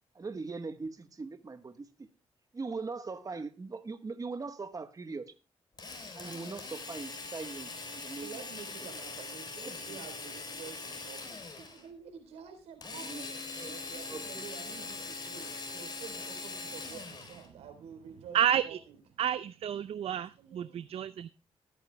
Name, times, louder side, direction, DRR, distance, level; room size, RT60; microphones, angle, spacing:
voice 1, 0.1-2.1 2.5-5.3 6.1-8.4 9.6-10.0 12.9-13.2 13.6-13.8 14.1-14.4, right 4 dB, 35° right, 1.2 m, -41 dB
Drill, 5.8-11.9 12.8-17.5, left 3 dB, 45° left, 3.6 m, -42 dB
voice 2, 8.2-18.4 18.6-19.0 20.4-20.8 21.1-21.2, right 7 dB, 85° right, 3.8 m, -49 dB
voice 3, 18.3-18.8 19.2-21.3, right 10 dB, 70° right, 0.6 m, -30 dB
19.5 x 9.1 x 2.2 m
supercardioid pair, 60°, 10 cm